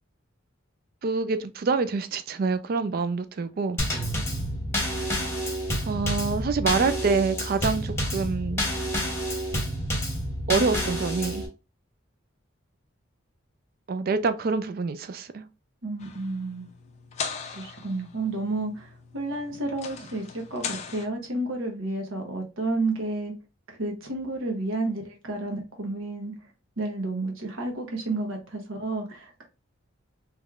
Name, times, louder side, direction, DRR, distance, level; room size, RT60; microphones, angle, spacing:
voice 1, 1.0-3.8 4.9-5.1 5.8-8.8 10.5-11.4 13.9-15.4, right 4 dB, 45° right, 0.3 m, -26 dB
Drum kit / Snare drum / Bass drum, 3.8-11.5, equal, 15° left, 1.1 m, -29 dB
voice 2, 15.8-16.7 17.5-23.3 23.7-26.3 26.8-29.5, right 2 dB, 75° right, 1.0 m, -31 dB
sound 1, 16.0-21.1, left 6 dB, 35° left, 0.4 m, -39 dB
3.5 x 3.1 x 2.3 m
head